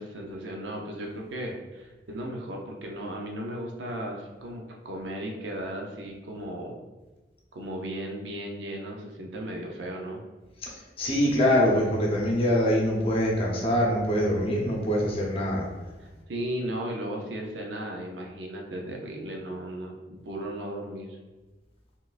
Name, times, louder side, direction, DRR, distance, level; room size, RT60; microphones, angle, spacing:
voice 1, 0.0-6.8 7.5-10.2 16.0-21.2, right 1 dB, 80° right, 0 dB, 0.6 m, -36 dB
voice 2, 11.0-15.7, equal, 30° left, -2 dB, 0.9 m, -24 dB
4.2 x 3.7 x 2.5 m, 1.2 s
head